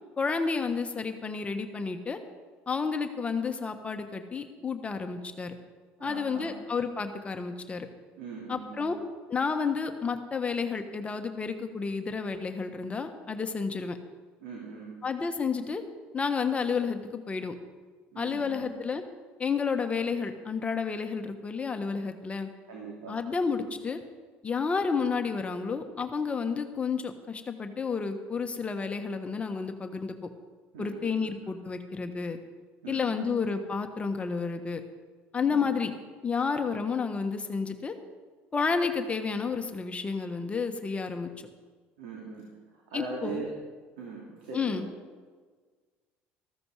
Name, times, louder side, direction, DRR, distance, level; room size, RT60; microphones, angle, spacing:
voice 1, 0.2-2.2 2.7-5.5 6.0-7.9 8.5-9.0 9.3-14.0 15.0-15.8 16.1-17.5 18.2-19.0 19.4-22.5 23.1-24.0 24.4-30.3 30.8-32.4 32.9-34.8 35.3-35.9 36.2-37.9 38.5-41.3 42.9-43.4 44.5-44.8, left 5 dB, 25° left, 6 dB, 1.3 m, -31 dB
voice 2, 6.0-6.6 8.1-8.9 14.4-15.0 18.1-18.7 22.7-23.2 30.7-31.3 32.8-33.3 35.5-35.7 42.0-42.4 42.7-43.5 44.0-44.9, right 4 dB, 90° right, -3 dB, 2.9 m, -41 dB
14.0 x 14.0 x 4.9 m, 1.5 s
supercardioid pair, 95°, 5 cm